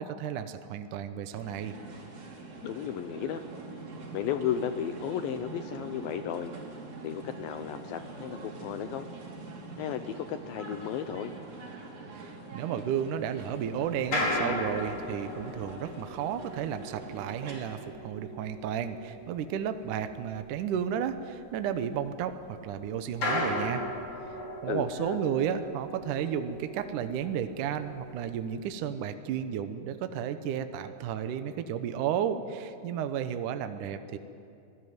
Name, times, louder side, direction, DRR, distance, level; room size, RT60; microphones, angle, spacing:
voice 1, 0.0-1.8 12.2-12.3 12.5-23.8 24.6-34.2, right 8 dB, 75° right, 9 dB, 2.0 m, -33 dB
sound 1, 1.3-17.8, right 3 dB, 45° right, 4.7 m, -44 dB
voice 2, 2.6-3.4 4.1-6.5 7.0-9.1 9.8-11.3 24.7-25.2, left 9 dB, 75° left, 9 dB, 2.3 m, -34 dB
sound 2, 13.3-22.7 23.1-28.7, left 1 dB, 55° left, 6.7 m, -37 dB
25.5 x 17.5 x 9.5 m, 2.5 s
omnidirectional pair, 4.7 m